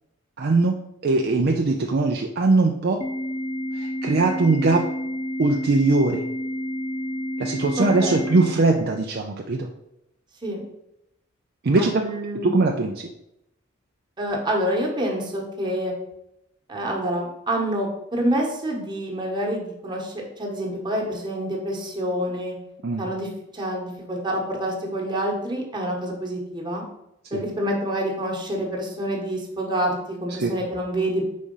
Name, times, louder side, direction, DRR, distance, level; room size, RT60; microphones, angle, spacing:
voice 1, 0.4-0.8 1.0-3.0 3.7-4.9 5.4-6.2 7.4-9.7 11.6-12.1 12.4-13.1 22.8-23.0 27.3-27.4 30.4-30.5, right 3 dB, 50° right, 2 dB, 0.5 m, -21 dB
Organ, 3.0-9.0, equal, 25° left, 0.8 m, -30 dB
voice 2, 7.8-8.3 10.4-10.6 11.8-12.5 14.2-15.9 16.7-22.6 23.0-23.3 23.5-26.8 27.3-31.2, right 1 dB, 20° right, -1 dB, 1.3 m, -27 dB
4.9 x 4.2 x 5.4 m, 0.83 s
head